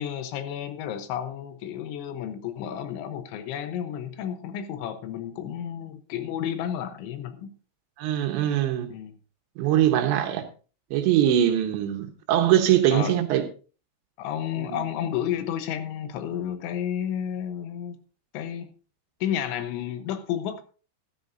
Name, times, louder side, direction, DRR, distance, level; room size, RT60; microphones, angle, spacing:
voice 1, 0.0-7.5 8.9-9.2 12.9-13.2 14.2-18.0 18.3-18.7 19.2-20.6, left 9 dB, 80° left, 3.2 m, -31 dB
voice 2, 8.0-8.9 9.6-10.4 10.9-13.4 14.6-14.8, right 11 dB, 75° right, 3.2 m, -22 dB
14.0 x 13.0 x 2.6 m
omnidirectional pair, 5.5 m